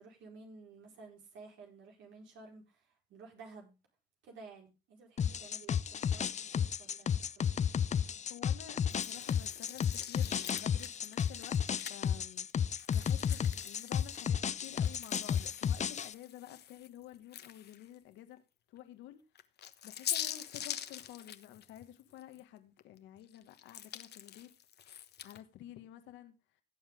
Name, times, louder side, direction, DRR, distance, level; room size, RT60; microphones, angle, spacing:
voice 1, 0.0-3.8 4.2-7.6, right 4 dB, 75° right, 4.8 m, -54 dB
sound 1, 5.2-16.1, left 8 dB, 40° left, 0.6 m, -33 dB
voice 2, 8.2-12.5 12.9-18.4 18.7-19.2 19.8-24.5 25.2-26.3, left 12 dB, 85° left, 1.6 m, -51 dB
sound 2, 8.9-12.2 12.8-17.9 18.4-18.5 19.3-22.4 22.8-25.4, left 10 dB, 60° left, 1.2 m, -44 dB
17.0 x 7.4 x 3.7 m
supercardioid pair, 80°, 19 cm